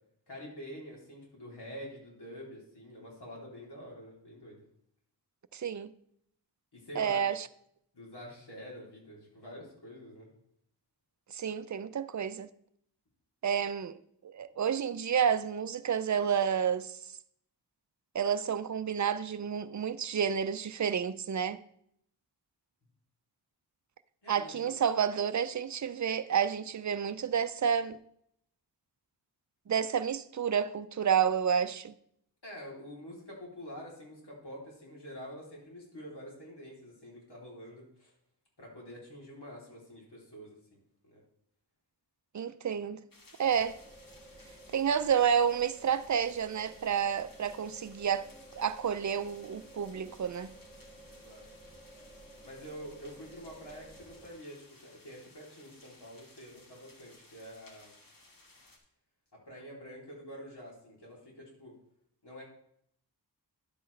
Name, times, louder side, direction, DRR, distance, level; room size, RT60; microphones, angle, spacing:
voice 1, 0.3-4.6 6.7-7.2 7.9-10.3 24.2-24.7 32.4-38.1 38.6-40.5 41.0-41.2 51.1-51.4 52.4-57.9 59.3-61.7 62.2-62.4, equal, 70° left, 3.3 m, -47 dB
voice 2, 5.5-5.9 7.0-7.5 11.3-12.5 13.4-17.1 18.1-21.6 24.3-28.0 29.7-31.9 42.3-43.0 43.4-43.8 44.7-48.3 48.5-50.5, right 8 dB, 45° right, 0.5 m, -30 dB
sound 1, 43.1-58.8, left 2 dB, 55° left, 1.7 m, -59 dB
sound 2, 43.4-54.3, right 1 dB, ahead, 2.0 m, -54 dB
11.0 x 7.8 x 3.3 m
wide cardioid pair, 75°, 42 cm